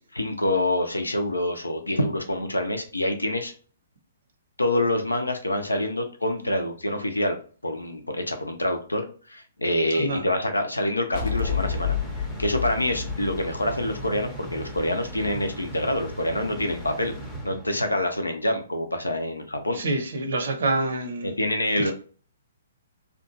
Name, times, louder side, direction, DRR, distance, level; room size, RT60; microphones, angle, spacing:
voice 1, 0.1-3.5 4.6-7.4 7.6-12.0 12.4-17.1 17.4-19.8 21.2-21.9, left 1 dB, 80° left, 0.6 m, -26 dB
sound 1, 11.1-14.6, left 7 dB, 45° left, 0.7 m, -29 dB
sound 2, 11.4-18.1, right 1 dB, 5° left, 0.6 m, -38 dB
voice 2, 19.8-21.3 21.8-21.9, right 2 dB, 60° right, 0.6 m, -27 dB
2.8 x 2.3 x 2.7 m
figure-of-eight pair, 120°, 0 cm